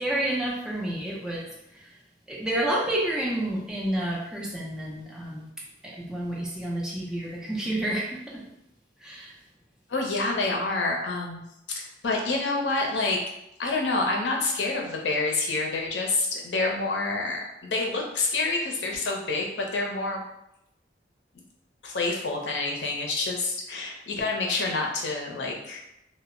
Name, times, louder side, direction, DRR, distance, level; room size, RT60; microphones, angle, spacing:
voice 1, 0.0-2.0 2.3-5.5 5.8-8.4 9.0-9.4, right 1 dB, 5° right, -5 dB, 0.5 m, -30 dB
voice 2, 9.9-11.4 11.7-13.2 13.6-20.2 21.8-25.8, left 3 dB, 75° left, 0 dB, 0.5 m, -28 dB
2.0 x 2.0 x 3.6 m, 0.82 s
head